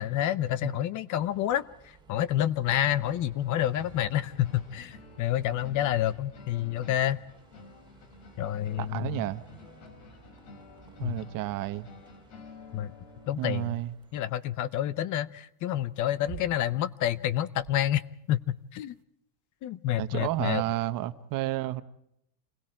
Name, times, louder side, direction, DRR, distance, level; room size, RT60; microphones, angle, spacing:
voice 1, 0.0-7.2 8.4-9.2 11.0-11.2 12.7-12.9 13.3-13.7 14.1-18.0 18.3-18.9 19.6-20.6, left 12 dB, 40° left, 0.7 m, -28 dB
Bus, 1.2-14.2, right 4 dB, 10° right, 3.0 m, -57 dB
sound 1, 2.9-13.7, left 3 dB, 80° left, 5.4 m, -51 dB
voice 2, 8.8-9.4 11.0-11.9 13.4-13.9 20.0-21.8, right 15 dB, 45° right, 1.1 m, -31 dB
sound 2, 13.5-19.0, right 13 dB, 90° right, 1.6 m, -49 dB
29.0 x 21.0 x 4.5 m
cardioid pair, 170°, 46 cm